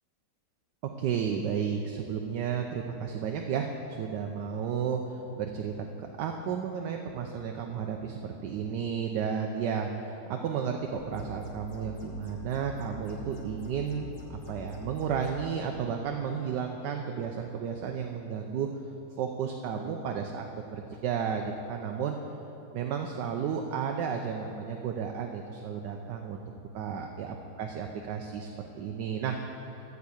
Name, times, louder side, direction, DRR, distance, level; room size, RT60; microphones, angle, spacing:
voice 1, 1.0-18.7 19.2-20.5 20.7-22.2 22.7-26.4 26.7-28.5 28.8-29.4, right 7 dB, 80° right, 3 dB, 1.2 m, -33 dB
sound 1, 10.9-15.3, left 4 dB, 70° left, 1.8 m, -46 dB
12.0 x 4.6 x 8.3 m, 2.9 s
omnidirectional pair, 1.9 m